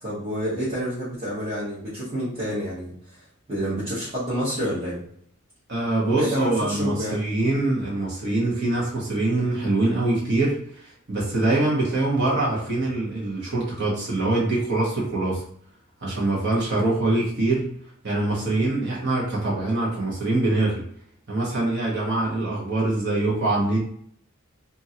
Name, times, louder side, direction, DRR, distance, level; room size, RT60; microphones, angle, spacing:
voice 1, 0.0-2.9 3.5-5.0 6.1-7.2, equal, 30° right, -11 dB, 1.2 m, -28 dB
voice 2, 5.7-15.4 16.0-17.7 18.0-20.8 21.3-23.8, right 2 dB, 55° right, -5 dB, 1.2 m, -24 dB
2.8 x 2.6 x 2.8 m, 0.64 s
head